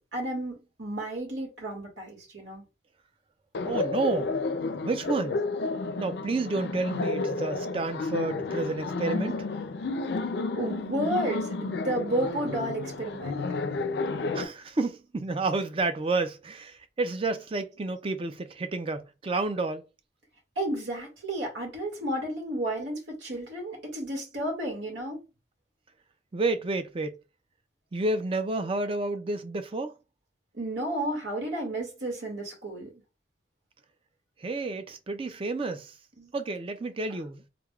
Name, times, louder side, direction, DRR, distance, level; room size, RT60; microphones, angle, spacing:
voice 1, 0.1-2.6 10.5-13.4 20.6-25.2 30.5-32.9 36.2-36.3, right 1 dB, 85° right, 2.0 m, -32 dB
Laughter, 3.5-14.4, left 3 dB, 65° left, 0.4 m, -31 dB
voice 2, 3.6-4.3 4.8-5.4 6.0-9.5 14.3-19.8 26.3-27.1 27.9-29.9 34.4-35.9 36.3-37.5, right 3 dB, 30° right, 0.4 m, -30 dB
3.8 x 3.3 x 2.3 m
head